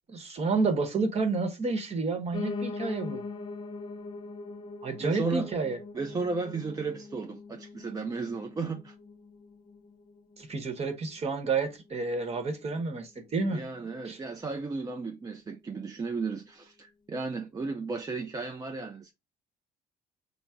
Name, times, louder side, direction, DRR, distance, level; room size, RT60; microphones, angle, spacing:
voice 1, 0.1-3.2 4.8-5.8 10.4-13.6 14.0-14.2, right 4 dB, 40° right, 1.0 m, -30 dB
Piano, 2.3-11.4 11.8-13.0 13.3-13.4 13.6-13.7 13.9-14.0 14.6-14.7, left 3 dB, 25° left, 0.5 m, -42 dB
voice 2, 5.0-5.5 5.9-8.9 13.5-19.1, right 4 dB, 20° right, 0.4 m, -34 dB
5.5 x 2.0 x 3.5 m
cardioid pair, 110°, 17 cm